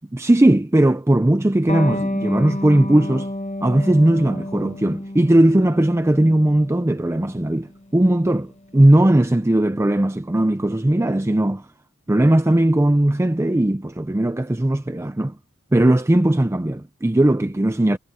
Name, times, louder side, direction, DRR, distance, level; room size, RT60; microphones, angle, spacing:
voice 1, 0.1-3.3 3.6-11.7 12.1-15.4 15.7-18.0, right 1 dB, 10° right, 0.5 m, -18 dB
Electric guitar, 1.7-8.8, left 1 dB, 30° left, 1.3 m, -31 dB
head